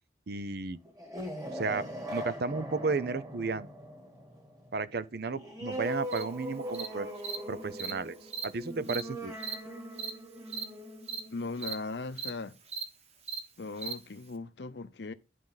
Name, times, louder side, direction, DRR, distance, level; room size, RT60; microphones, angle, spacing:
voice 1, 0.3-0.8 1.5-3.7 4.7-7.1 7.5-8.2 8.4-9.4, right 4 dB, 60° right, 0.6 m, -33 dB
sound 1, 0.8-12.1, equal, 20° right, 2.5 m, -41 dB
Cricket, 6.1-6.2 6.7-6.9 7.2-7.4 7.8-7.9 8.3-8.4 8.9-9.0 9.4-9.5 10.0-10.1 10.5-10.6 11.1-11.2 11.6-11.7 12.2-12.3 12.7-12.8 13.3-13.4 13.8-13.9, right 6 dB, 40° right, 1.1 m, -36 dB
voice 2, 11.3-12.6 13.6-15.1, left 3 dB, 75° left, 0.7 m, -38 dB
11.0 x 4.7 x 4.0 m
head